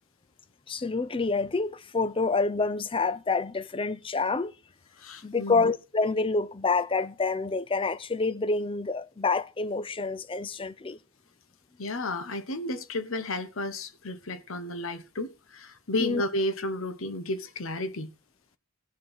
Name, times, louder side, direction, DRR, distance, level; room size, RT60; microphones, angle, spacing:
voice 1, 0.7-4.5 5.2-11.0 16.0-16.2, left 3 dB, 25° left, 0.5 m, -27 dB
voice 2, 5.0-5.7 11.8-18.1, left 1 dB, 75° left, 1.1 m, -32 dB
16.0 x 6.3 x 4.8 m
head